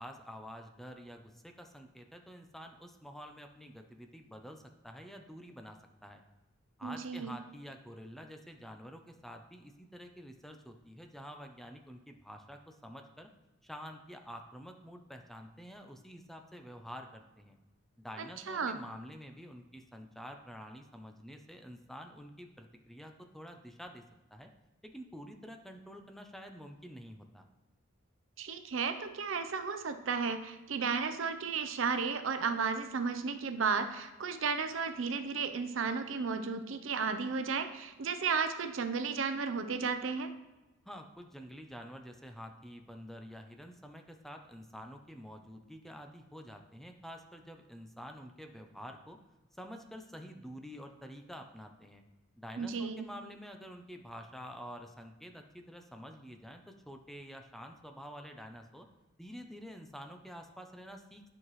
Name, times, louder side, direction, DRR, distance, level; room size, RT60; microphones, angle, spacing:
voice 1, 0.0-6.2 6.8-13.3 13.6-17.6 18.0-24.0 24.3-24.5 24.8-27.5 40.9-49.2 49.6-52.0 52.4-58.9 59.2-61.2, equal, ahead, 4 dB, 0.5 m, -48 dB
voice 2, 6.8-7.4 18.5-18.8 28.4-40.3 52.6-53.1, right 5 dB, 70° right, 9 dB, 0.6 m, -33 dB
10.5 x 5.7 x 3.1 m, 1.1 s
head